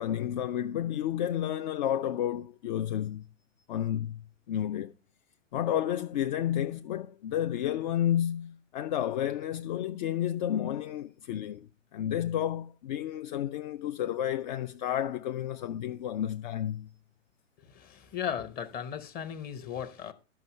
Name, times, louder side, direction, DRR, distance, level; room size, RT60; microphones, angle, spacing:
voice 1, 0.0-3.3 3.7-4.9 5.5-16.9, left 11 dB, 40° left, 0.4 m, -31 dB
voice 2, 17.7-20.1, left 8 dB, 25° left, 0.8 m, -36 dB
12.0 x 5.4 x 5.4 m
figure-of-eight pair, 105°, 38 cm